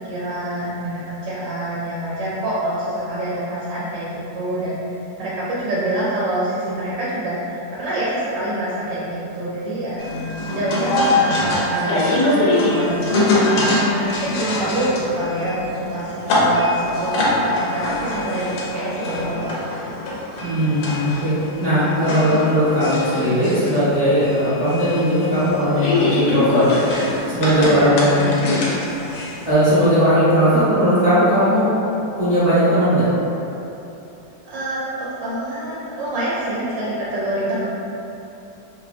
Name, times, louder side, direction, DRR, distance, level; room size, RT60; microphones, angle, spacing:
voice 1, 0.1-4.8 5.2-17.1 17.6-19.7 27.5-28.8 34.4-37.6, right 1 dB, 80° right, -9 dB, 1.2 m, -26 dB
sound 1, 10.0-29.5, left 2 dB, 80° left, 1.2 m, -23 dB
voice 2, 20.4-21.3 21.6-26.7 27.3-28.2 29.4-31.7 32.2-33.1, equal, 35° right, -18 dB, 0.6 m, -18 dB
3.1 x 2.2 x 2.4 m, 2.9 s
omnidirectional pair, 1.9 m